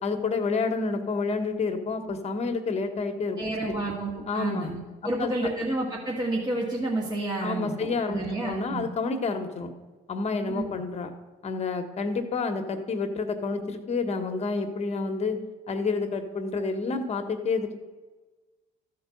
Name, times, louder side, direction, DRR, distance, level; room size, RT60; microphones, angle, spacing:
voice 1, 0.0-3.8 4.3-4.7 5.2-5.5 7.4-9.7 10.1-11.1 11.4-15.4 15.7-17.7, left 4 dB, 40° left, 6 dB, 1.2 m, -29 dB
voice 2, 3.4-8.9 10.5-10.7, right 2 dB, 25° right, -3 dB, 1.8 m, -30 dB
13.0 x 4.6 x 6.4 m, 1.3 s
cardioid pair, 110°, 17 cm